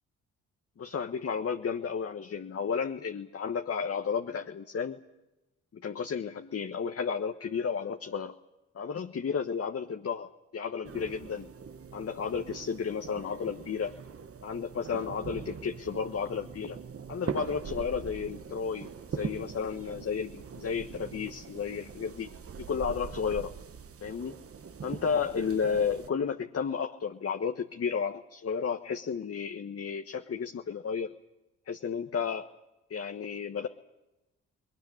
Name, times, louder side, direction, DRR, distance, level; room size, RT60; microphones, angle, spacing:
voice 1, 0.8-5.0 5.7-8.3 8.7-11.5 11.9-13.9 14.4-16.8 17.1-22.3 22.6-23.5 24.0-24.4 24.8-31.1 31.7-32.5 32.9-33.7, left 6 dB, 45° left, 5 dB, 1.3 m, -32 dB
sound 1, 10.8-26.1, right 6 dB, 45° right, 1.4 m, -42 dB
20.5 x 19.0 x 10.0 m, 0.98 s
supercardioid pair, 50°, 33 cm